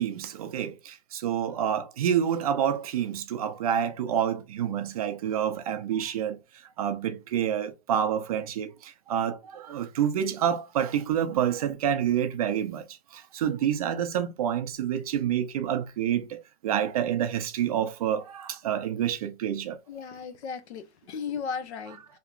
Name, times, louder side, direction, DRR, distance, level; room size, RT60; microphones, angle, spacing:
voice 1, 0.0-19.8, right 9 dB, 35° right, 0.4 m, -28 dB
voice 2, 19.9-22.2, left 6 dB, 80° left, 0.9 m, -36 dB
3.3 x 2.9 x 2.3 m
supercardioid pair, 165°, 33 cm